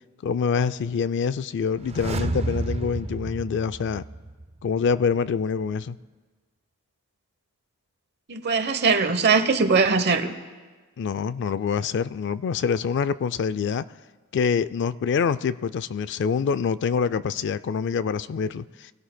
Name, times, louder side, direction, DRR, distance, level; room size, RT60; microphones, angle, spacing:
voice 1, 0.2-4.0 4.6-6.0 11.0-13.8 14.3-18.9, left 6 dB, 55° left, 15 dB, 0.3 m, -25 dB
sound 1, 1.7-4.6 4.9-5.0, right 2 dB, 30° right, 0.4 m, -30 dB
voice 2, 8.3-10.3, right 4 dB, 50° right, 9 dB, 0.9 m, -21 dB
24.0 x 17.0 x 2.2 m, 1.4 s
head